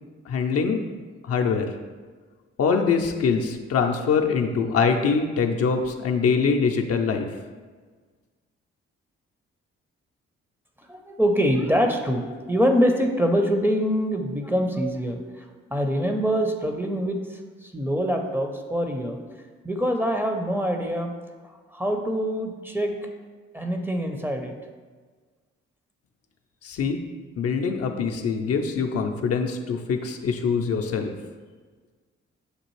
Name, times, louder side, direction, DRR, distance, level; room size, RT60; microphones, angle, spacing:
voice 1, 0.3-0.8 1.2-1.7 2.6-7.3 26.6-27.0 27.4-31.1, left 5 dB, 55° left, 3 dB, 0.5 m, -23 dB
voice 2, 10.9-15.2 15.7-17.2 17.7-19.2 19.6-21.1 21.7-22.9 23.5-24.5, equal, 5° right, 3 dB, 0.6 m, -24 dB
6.5 x 2.4 x 3.1 m, 1.5 s
hypercardioid pair, 40°, 29 cm